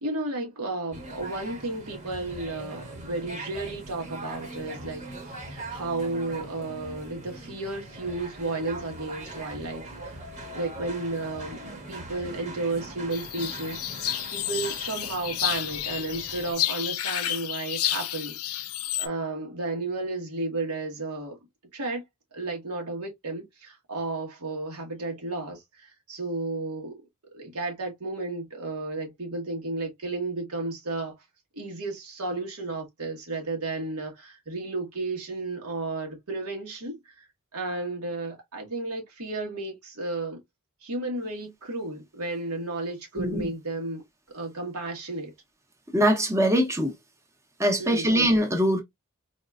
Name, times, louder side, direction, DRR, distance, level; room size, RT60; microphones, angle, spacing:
voice 1, 0.0-10.2 10.5-14.1 14.3-18.7 19.0-21.4 21.7-22.0 22.3-27.0 27.3-31.1 31.5-37.2 37.5-40.4 40.8-44.0 44.3-45.3 47.8-48.2, right 2 dB, 80° right, 1.4 m, -33 dB
sound 1, 0.9-16.5, right 2 dB, 35° right, 1.1 m, -41 dB
sound 2, 13.1-19.1, left 12 dB, 70° left, 0.5 m, -31 dB
voice 2, 43.2-43.5 45.9-46.9 47.6-48.8, equal, 15° right, 0.8 m, -22 dB
4.1 x 3.0 x 2.4 m
head